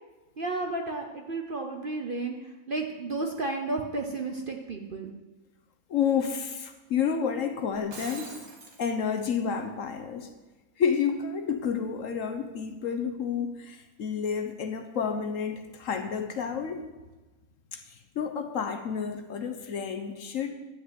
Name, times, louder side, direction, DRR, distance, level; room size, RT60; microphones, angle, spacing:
voice 1, 0.4-5.1, right 3 dB, 45° right, 2 dB, 0.8 m, -32 dB
voice 2, 5.9-8.3 8.8-10.3 10.8-16.8 17.7-20.5, left 7 dB, 60° left, 6 dB, 1.1 m, -30 dB
Shatter, 7.7-8.8, right 3 dB, 65° right, 2.1 m, -43 dB
11.0 x 5.3 x 8.1 m, 1.2 s
omnidirectional pair, 1.7 m